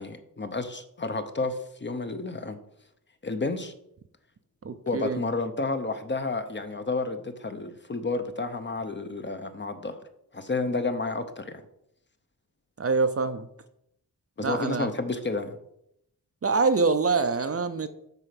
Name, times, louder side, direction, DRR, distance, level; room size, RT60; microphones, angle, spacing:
voice 1, 0.0-2.6 3.2-3.7 4.9-10.0 10.3-11.6 14.4-15.6, left 3 dB, 30° left, 9 dB, 0.7 m, -31 dB
voice 2, 4.6-5.2 12.8-13.5 14.4-14.9 16.4-17.9, right 4 dB, 40° right, 10 dB, 0.5 m, -25 dB
8.1 x 4.3 x 5.8 m, 0.77 s
wide cardioid pair, 120°, 38 cm